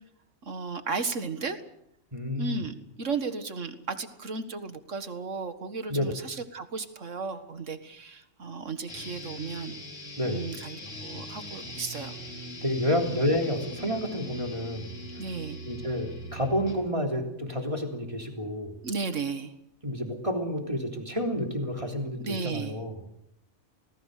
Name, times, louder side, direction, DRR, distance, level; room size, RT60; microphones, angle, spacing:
voice 1, 0.4-1.6 2.4-9.8 10.2-12.2 12.9-13.1 15.2-15.6 18.8-19.5 22.2-22.8, right 4 dB, 80° right, 9 dB, 2.1 m, -34 dB
voice 2, 2.1-2.6 5.9-6.1 10.2-10.5 12.6-15.2 15.6-18.7 19.8-23.0, left 1 dB, 25° right, 3 dB, 3.5 m, -30 dB
sound 1, 8.9-16.9, equal, 85° left, 4.2 m, -41 dB
28.5 x 19.0 x 6.7 m, 0.80 s
omnidirectional pair, 1.3 m